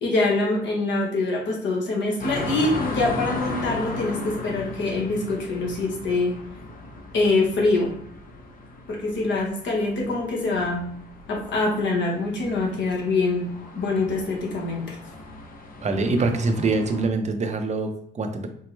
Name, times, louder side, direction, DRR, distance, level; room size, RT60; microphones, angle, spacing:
voice 1, 0.0-6.4 7.1-7.9 8.9-10.9 11.3-13.5 13.7-15.0, left 2 dB, 65° left, -1 dB, 1.1 m, -24 dB
sound 1, 2.2-17.1, left 2 dB, 45° left, 0.7 m, -36 dB
voice 2, 15.8-18.5, right 3 dB, 35° right, 6 dB, 0.6 m, -24 dB
4.4 x 2.0 x 3.1 m, 0.69 s
cardioid pair, 90°, 20 cm